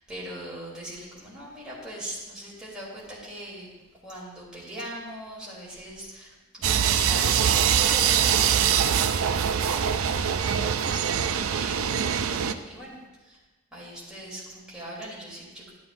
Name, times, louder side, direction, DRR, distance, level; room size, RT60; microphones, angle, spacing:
voice 1, 0.1-3.7 4.0-13.4 13.7-15.7, right 1 dB, 5° right, -8 dB, 3.2 m, -40 dB
sound 1, 6.6-12.5, right 8 dB, 70° right, 0.4 m, -23 dB
11.5 x 11.5 x 2.6 m, 1.2 s
head